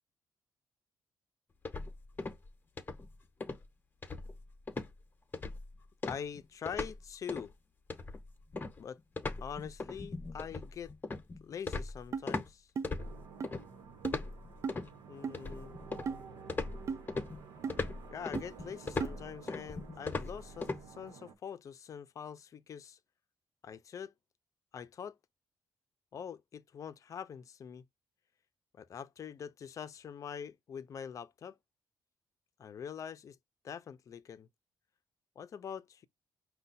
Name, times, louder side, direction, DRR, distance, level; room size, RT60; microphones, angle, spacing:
sound 1, 1.6-2.5 2.8-3.1 3.4-3.6 4.0-4.4 4.7-4.9 5.3-5.7 6.0-7.0 7.3-7.5 7.9-12.5 12.8-13.6 14.0-14.9 15.3-16.2 16.5-20.8, left 3 dB, 30° left, 0.9 m, -38 dB
voice 1, 6.0-7.5 8.8-9.0 9.4-10.9 11.4-12.7 15.1-15.7 18.1-23.0 23.6-24.1 24.7-25.2 26.1-27.8 28.7-31.6 32.6-33.4 33.6-34.5 35.4-36.1, left 7 dB, 50° left, 0.5 m, -44 dB
sound 2, 12.1-12.3 12.8-12.9 13.4-13.5 14.0-14.2 14.6-14.8 15.2-15.4 16.1-16.2 16.9-17.0 17.6-17.8 18.3-18.4 19.0-19.1, right 5 dB, 45° right, 0.3 m, -35 dB
sound 3, 13.0-21.3, right 6 dB, 90° right, 1.0 m, -52 dB
5.3 x 2.3 x 4.1 m
cardioid pair, 100°, 7 cm